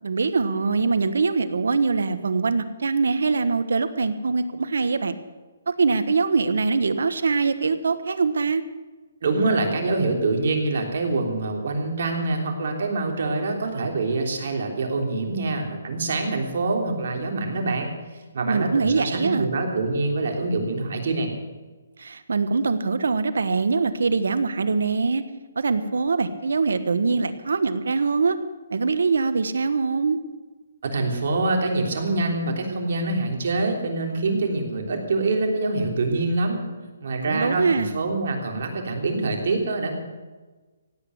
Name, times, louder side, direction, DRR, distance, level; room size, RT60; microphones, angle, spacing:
voice 1, 0.0-5.1 5.7-8.6 18.5-19.5 22.0-25.2 25.5-28.4 28.7-30.2 37.3-37.9, right 4 dB, 80° right, 12 dB, 1.3 m, -23 dB
voice 2, 9.2-18.0 18.3-21.3 30.9-36.6 37.0-39.9, right 3 dB, 60° right, 2 dB, 3.4 m, -25 dB
16.5 x 9.2 x 8.1 m, 1.3 s
hypercardioid pair, 155°, 0 cm